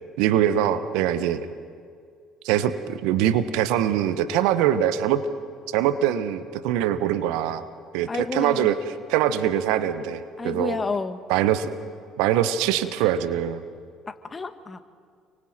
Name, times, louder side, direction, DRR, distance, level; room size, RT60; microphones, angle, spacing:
voice 1, 0.2-1.5 2.4-5.2 5.7-7.6 7.9-8.8 9.1-10.8 11.3-11.7 12.2-13.6, right 11 dB, 70° right, 11 dB, 1.2 m, -23 dB
voice 2, 8.1-8.7 10.4-11.2 14.3-14.8, left 4 dB, 30° left, 9 dB, 1.8 m, -29 dB
30.0 x 24.0 x 4.4 m, 2.1 s
hypercardioid pair, 60°, 0 cm